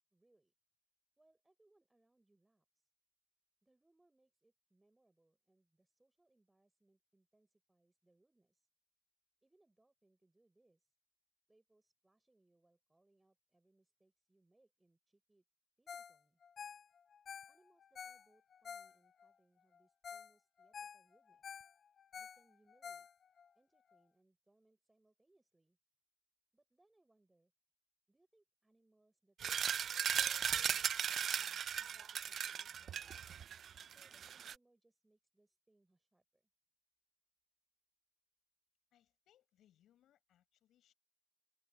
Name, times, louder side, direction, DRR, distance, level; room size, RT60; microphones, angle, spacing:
voice 1, 0.1-0.5 1.2-2.9 3.6-8.7 9.4-10.9 11.5-15.4 15.8-16.4 17.5-21.6 22.2-23.1 23.5-25.8 26.5-27.5 28.1-33.5 33.9-36.5, right 2 dB, 10° right, 6.6 m, -75 dB
Ringtone, 15.9-16.2 16.4-19.3 19.7-19.8 20.0-20.3 20.6-23.5 23.9-24.0, left 7 dB, 30° left, 0.8 m, -50 dB
sound 1, 29.4-34.5, right 8 dB, 35° right, 0.4 m, -37 dB
voice 2, 38.9-40.9, left 11 dB, 50° left, 6.3 m, -73 dB
open air
cardioid pair, 130°, 0 cm